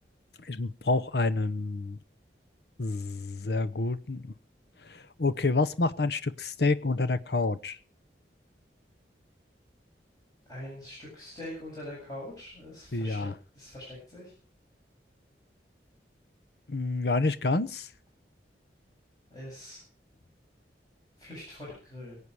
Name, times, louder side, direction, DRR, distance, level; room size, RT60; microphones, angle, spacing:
voice 1, 0.4-2.0 2.8-4.3 4.8-7.8 12.9-13.4 16.7-17.9, left 3 dB, 65° left, 0.8 m, -28 dB
voice 2, 10.5-13.3 13.5-14.3 19.3-19.8 21.2-22.2, left 1 dB, 20° left, 7.7 m, -43 dB
23.5 x 8.5 x 4.7 m
head